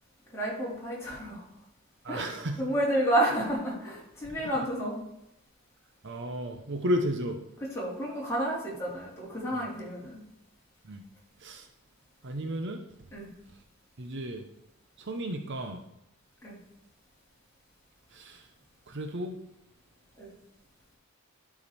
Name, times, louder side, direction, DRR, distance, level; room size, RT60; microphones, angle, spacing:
voice 1, 0.3-1.5 2.1-2.3 2.6-5.0 7.7-10.2 13.1-13.3 16.4-16.6 20.2-20.3, right 1 dB, 10° left, -6 dB, 3.7 m, -30 dB
voice 2, 2.0-2.6 6.0-7.4 10.8-11.0 11.4-11.7 12.2-12.8 14.0-14.5 15.0-15.8 18.1-18.5 18.9-19.4, equal, 55° right, 6 dB, 0.8 m, -33 dB
11.5 x 5.1 x 4.2 m, 0.85 s
head